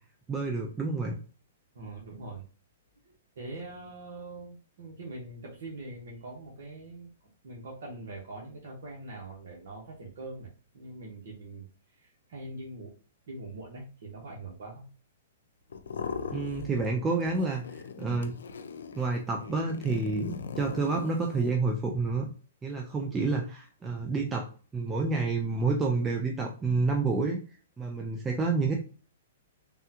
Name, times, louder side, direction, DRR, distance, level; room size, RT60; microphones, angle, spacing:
voice 1, 0.3-1.2 16.3-18.4 19.0-22.3 22.6-24.5 24.7-27.4 27.8-28.7, right 3 dB, 15° right, 1 dB, 0.4 m, -29 dB
voice 2, 1.7-2.4 3.0-7.1 7.4-10.5 10.7-12.9 13.3-14.8, right 2 dB, 65° right, -3 dB, 1.0 m, -43 dB
sound 1, 15.7-16.9 17.2-21.6, left 5 dB, 85° left, 0.4 m, -39 dB
3.5 x 2.3 x 2.8 m, 0.38 s
hypercardioid pair, 140°, 0 cm